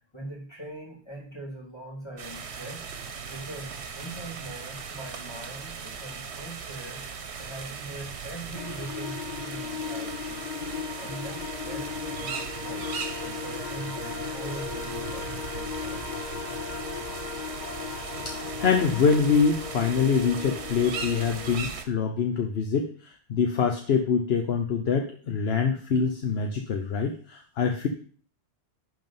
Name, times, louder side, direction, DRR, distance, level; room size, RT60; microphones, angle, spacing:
voice 1, 0.1-2.9 3.3-7.0 7.4-10.5 11.0-12.9 13.2-16.1, right 1 dB, 25° left, -1 dB, 2.5 m, -42 dB
sound 1, 2.2-21.8, right 6 dB, 85° right, 1.2 m, -38 dB
sound 2, 8.5-21.6, left 7 dB, 50° left, 0.6 m, -37 dB
voice 2, 18.2-22.9 23.3-27.9, left 6 dB, 70° left, 4 dB, 1.0 m, -25 dB
10.5 x 3.7 x 5.5 m, 0.43 s
omnidirectional pair, 1.1 m